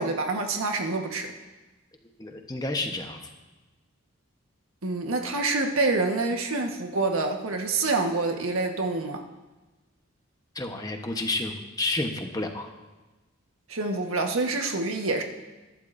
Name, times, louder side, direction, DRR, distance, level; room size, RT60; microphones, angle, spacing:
voice 1, 0.0-1.3 4.8-9.2 13.7-15.2, right 3 dB, 90° right, 3 dB, 1.4 m, -27 dB
voice 2, 2.2-3.2 10.5-12.7, left 2 dB, 20° left, 4 dB, 1.1 m, -30 dB
22.5 x 11.5 x 2.7 m, 1.1 s
head